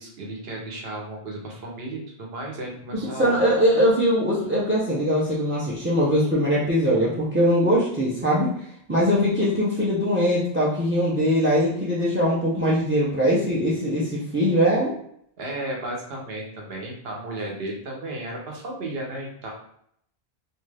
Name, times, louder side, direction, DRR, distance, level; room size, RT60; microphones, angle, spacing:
voice 1, 0.0-3.4 15.4-19.5, right 1 dB, 75° right, -1 dB, 1.0 m, -34 dB
voice 2, 2.9-8.5 8.9-14.9, equal, 20° right, -6 dB, 0.3 m, -21 dB
2.6 x 2.3 x 3.2 m, 0.68 s
omnidirectional pair, 1.0 m